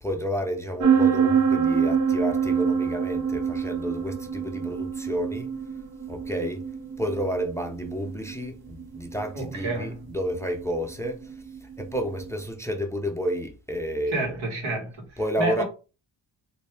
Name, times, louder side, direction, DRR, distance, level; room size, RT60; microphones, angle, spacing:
voice 1, 0.0-5.5 6.1-6.6 7.0-11.3 11.6-14.4 15.2-15.6, equal, 5° left, 0.5 m, -30 dB
sound 1, 0.8-12.3, right 6 dB, 50° right, 0.6 m, -26 dB
voice 2, 9.3-10.1 14.1-15.6, right 2 dB, 80° right, 1.5 m, -30 dB
3.4 x 2.7 x 3.3 m
cardioid pair, 85°, 47 cm